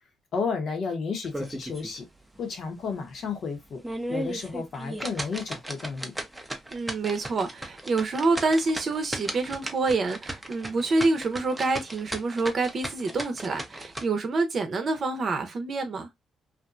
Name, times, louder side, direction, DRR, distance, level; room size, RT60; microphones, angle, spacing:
voice 1, 0.3-2.1 2.4-3.8 4.1-6.1, left 5 dB, 60° left, 0.9 m, -32 dB
sound 1, 1.2-2.0 2.4-2.5 3.0-3.1 3.7-14.1, right 1 dB, 5° right, 0.6 m, -36 dB
voice 2, 6.7-16.1, right 3 dB, 45° right, 0.7 m, -27 dB
2.5 x 2.2 x 2.5 m
cardioid pair, 90°, 0 cm